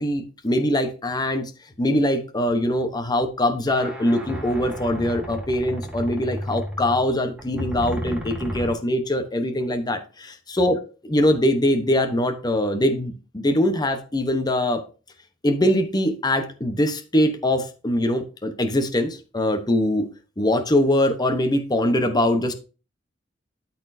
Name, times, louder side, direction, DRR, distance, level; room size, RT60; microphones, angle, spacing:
voice 1, 0.0-1.5 1.8-10.8 11.0-14.8 15.4-20.1 20.4-22.5, left 1 dB, 20° left, 7 dB, 0.9 m, -22 dB
sound 1, 3.7-8.7, equal, 5° right, 1.5 m, -33 dB
12.5 x 4.3 x 2.7 m, 0.34 s
head